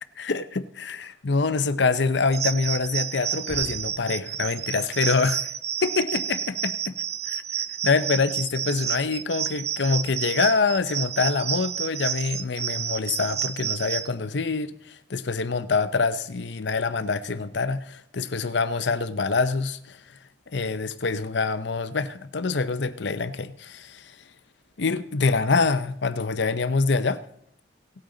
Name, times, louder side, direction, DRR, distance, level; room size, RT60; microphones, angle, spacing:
voice 1, 0.2-5.5 5.8-6.9 7.3-20.2 20.5-24.2 24.8-27.2, left 4 dB, 65° left, 0.7 m, -25 dB
sound 1, 1.0-1.2 3.2-4.3, equal, 70° right, 4.3 m, -42 dB
sound 2, 2.3-14.1, right 9 dB, 35° right, 0.5 m, -30 dB
17.5 x 8.9 x 3.9 m
head